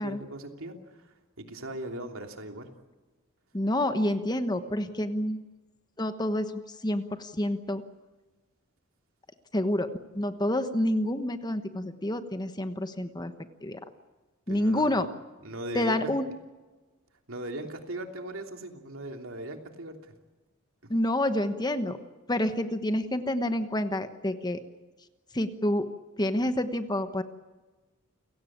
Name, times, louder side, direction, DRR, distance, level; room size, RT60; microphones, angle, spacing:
voice 1, 0.0-2.7 14.5-15.0 15.4-16.1 17.3-20.0 20.8-20.9, right 1 dB, 70° right, 4 dB, 3.1 m, -39 dB
voice 2, 3.5-5.4 6.0-7.8 9.5-13.3 13.6-13.8 14.5-15.1 15.7-16.4 20.9-22.0 22.3-24.6 25.3-25.9 26.2-27.2, left 1 dB, 20° left, 9 dB, 1.2 m, -28 dB
29.5 x 17.5 x 8.8 m, 1.3 s
head